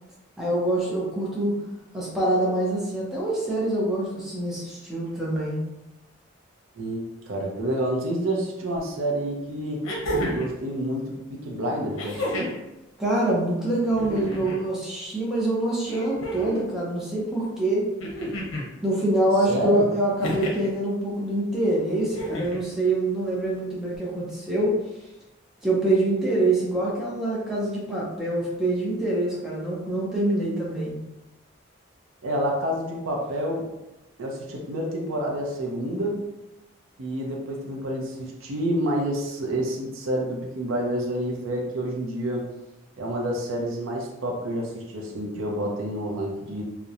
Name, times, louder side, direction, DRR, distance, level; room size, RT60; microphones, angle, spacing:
voice 1, 0.4-1.6 1.9-5.6 13.0-17.9 18.8-24.8 25.6-30.9, right 1 dB, ahead, -6 dB, 0.5 m, -25 dB
voice 2, 6.8-9.9 10.2-12.6 19.5-19.9 32.2-33.7 34.2-36.2 37.0-42.5 43.0-46.6, right 1 dB, 90° right, 0 dB, 0.5 m, -28 dB
sound 1, 8.8-8.9 9.8-10.6 12.0-12.6 13.9-14.6 15.9-16.7 18.0-18.7 20.2-20.7 22.1-22.6 24.0-24.1, equal, 80° left, 0.7 m, -31 dB
2.8 x 2.1 x 2.4 m, 0.96 s
head